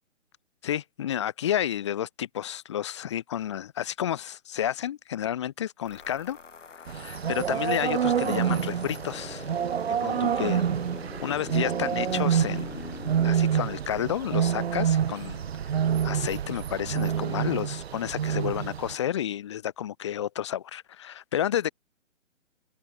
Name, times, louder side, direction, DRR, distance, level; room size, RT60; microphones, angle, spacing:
voice 1, 0.6-6.4 6.7-9.5 9.9-10.7 11.2-12.8 13.2-15.5 15.8-21.7, left 11 dB, 25° left, 0.7 m, -31 dB
sound 1, 5.9-13.3, left 5 dB, 70° left, 7.8 m, -42 dB
sound 2, 6.9-18.9, right 8 dB, 55° right, 0.8 m, -27 dB
open air
figure-of-eight pair, 140°, 39 cm